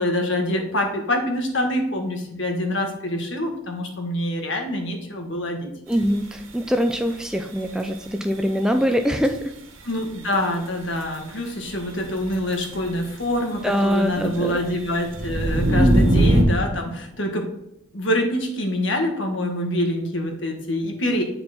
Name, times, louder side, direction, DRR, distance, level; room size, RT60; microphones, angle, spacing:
voice 1, 0.0-5.7 9.8-17.4 17.9-21.2, left 1 dB, 65° left, 2 dB, 1.6 m, -25 dB
voice 2, 5.9-9.5 13.6-14.6 15.7-16.2, equal, 5° right, 6 dB, 0.4 m, -23 dB
sound 1, 5.9-6.0 9.2-9.3 12.1-13.1 13.9-14.3 14.6-16.4, right 1 dB, 85° right, 1.4 m, -20 dB
9.8 x 4.3 x 4.3 m, 0.85 s
head